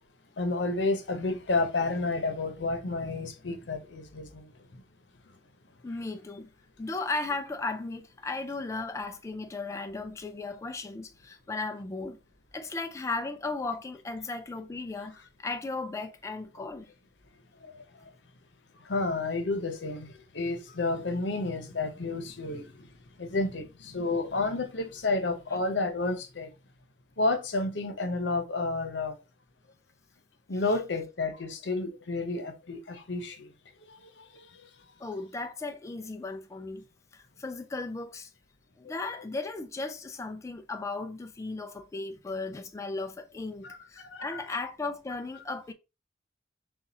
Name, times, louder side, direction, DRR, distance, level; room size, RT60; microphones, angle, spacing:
voice 1, 0.4-4.8 17.6-17.8 18.9-22.9 23.2-26.5 27.2-29.2 30.5-33.5 34.2-34.3 43.6-43.8 44.0-44.4, left 3 dB, 80° left, 0.8 m, -31 dB
voice 2, 5.8-6.5 6.8-12.2 12.5-16.9 30.5-30.8 35.0-36.8 37.1-38.3 38.8-45.7, left 3 dB, 15° left, 0.3 m, -36 dB
7.0 x 2.4 x 2.8 m
head